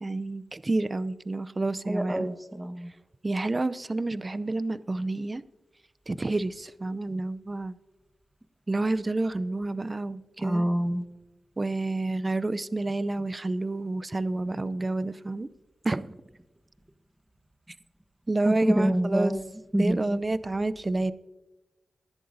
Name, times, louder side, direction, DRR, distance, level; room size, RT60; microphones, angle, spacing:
voice 1, 0.0-2.3 3.2-5.4 6.1-7.8 8.7-10.6 11.6-15.5 15.8-16.2 18.3-19.3 19.8-21.1, right 2 dB, 35° right, 0.6 m, -29 dB
voice 2, 1.9-2.9 10.4-11.1 18.4-19.4 19.7-20.2, right 1 dB, 15° right, 1.2 m, -26 dB
18.5 x 11.0 x 2.7 m
cardioid pair, 45°, 0 cm